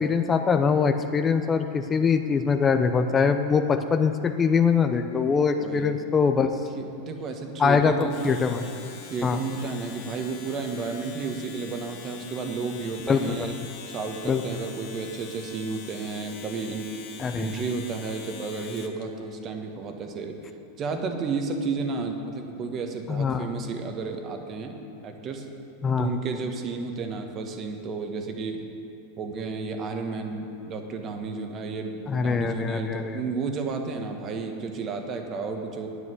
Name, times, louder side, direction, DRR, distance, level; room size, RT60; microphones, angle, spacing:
voice 1, 0.0-6.5 7.6-8.6 9.2-9.4 13.1-13.5 14.2-14.6 17.2-17.5 23.1-23.5 25.8-26.1 32.1-33.2, left 5 dB, 20° left, 7 dB, 0.7 m, -23 dB
voice 2, 5.6-6.0 6.7-8.1 9.1-13.5 13.9-16.9 17.3-20.4 20.8-25.5 26.0-28.7 29.2-35.9, right 4 dB, 35° right, 4 dB, 1.4 m, -32 dB
Domestic sounds home sounds, 8.0-19.0, left 6 dB, 55° left, 1.4 m, -44 dB
9.4 x 8.2 x 7.7 m, 2.9 s
hypercardioid pair, 100°, 0 cm